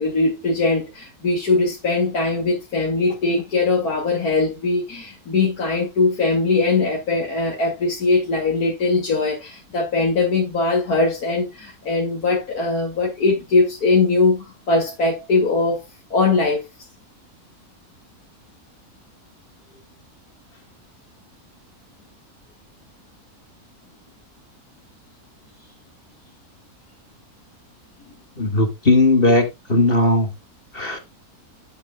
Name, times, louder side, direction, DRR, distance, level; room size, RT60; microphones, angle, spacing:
voice 1, 0.0-15.8 16.1-16.6, left 3 dB, 80° left, 3.0 m, -21 dB
voice 2, 28.4-30.3 30.7-31.0, left 2 dB, 40° left, 2.4 m, -17 dB
10.5 x 8.9 x 2.4 m
omnidirectional pair, 1.6 m